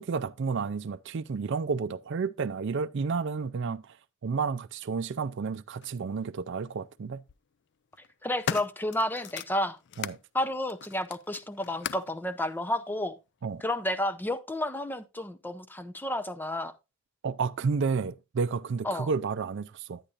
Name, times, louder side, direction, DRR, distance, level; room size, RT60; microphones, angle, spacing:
voice 1, 0.0-3.8 4.2-7.2 10.0-10.2 13.4-13.6 17.2-20.0, right 5 dB, 60° right, 0.4 m, -31 dB
sound 1, 5.8-5.9 7.0-7.4 7.9-10.2 10.7-12.2 13.0-13.1, left 8 dB, 60° left, 0.4 m, -38 dB
voice 2, 8.2-9.8 10.3-13.2 13.6-16.7 18.8-19.1, left 1 dB, 10° left, 0.6 m, -31 dB
10.0 x 9.9 x 2.5 m
head